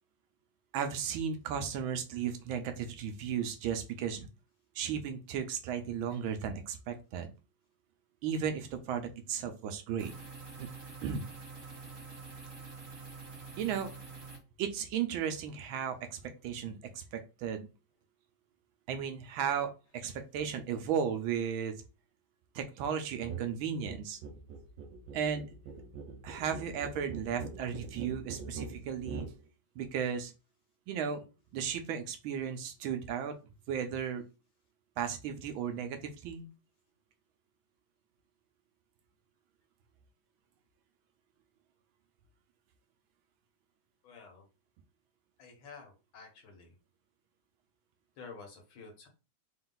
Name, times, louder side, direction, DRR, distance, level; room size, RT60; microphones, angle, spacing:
voice 1, 0.7-4.3 4.7-7.3 8.2-10.1 10.6-10.7 11.0-11.3 13.6-13.9 14.6-17.7 18.9-21.7 22.5-24.2 25.1-25.5 26.2-29.3 29.7-30.3 30.9-31.2 31.5-33.4 33.7-34.2 35.0-36.5, right 8 dB, 85° right, 7 dB, 1.5 m, -35 dB
sound 1, 10.0-14.4, right 4 dB, 45° right, 1.8 m, -47 dB
sound 2, 23.2-23.5 23.7-29.4, right 5 dB, 70° right, 1.4 m, -43 dB
voice 2, 44.0-44.4 45.4-46.7 48.2-49.1, left 4 dB, 75° left, 3 dB, 2.0 m, -50 dB
4.3 x 2.3 x 3.8 m, 0.31 s
omnidirectional pair, 2.2 m